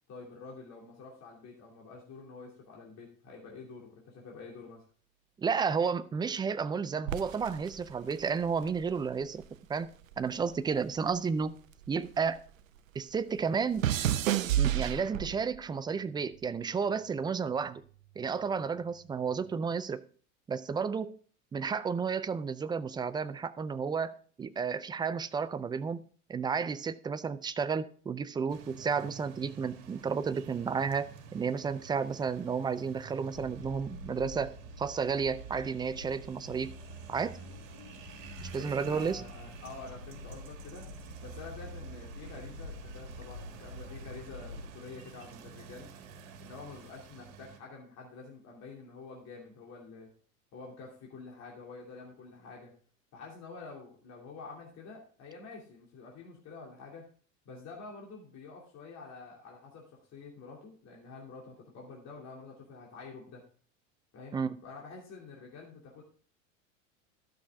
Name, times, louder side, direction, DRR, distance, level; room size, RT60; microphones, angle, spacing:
voice 1, 0.1-4.8 38.6-40.9 41.2-45.9 46.4-50.1 50.5-52.7 53.1-57.0 57.4-63.4 64.1-66.0, left 4 dB, 40° left, -2 dB, 2.7 m, -48 dB
voice 2, 5.4-9.4 9.7-11.6 11.9-12.4 12.9-13.9 14.6-17.8 18.2-20.0 20.5-21.2 21.5-36.8 37.1-37.4 38.4-39.2 64.3-64.6, right 6 dB, 10° right, 14 dB, 0.4 m, -32 dB
sound 1, 7.1-9.6 9.8-12.5 12.8-15.6 16.3-16.7, right 11 dB, 80° right, 0.7 m, -32 dB
sound 2, 28.5-47.6, right 7 dB, 60° right, 1.7 m, -51 dB
sound 3, 33.3-44.7, equal, 80° left, 4.1 m, -46 dB
12.5 x 6.5 x 3.5 m, 0.44 s
hypercardioid pair, 85°, 39 cm